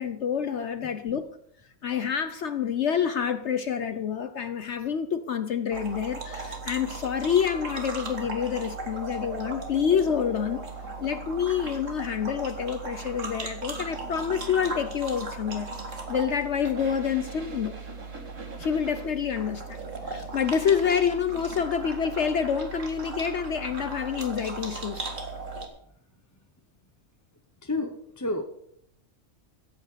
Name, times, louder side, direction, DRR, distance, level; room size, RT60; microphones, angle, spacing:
voice 1, 0.0-1.3 1.8-10.6 11.0-15.7 16.1-17.7 18.6-19.8 20.1-25.1, left 7 dB, 60° left, 10 dB, 1.0 m, -27 dB
sound 1, 5.7-25.7, right 3 dB, 65° right, 2.3 m, -37 dB
voice 2, 27.6-28.4, left 2 dB, 15° left, 4 dB, 0.8 m, -30 dB
15.5 x 8.3 x 6.7 m, 0.70 s
omnidirectional pair, 1.4 m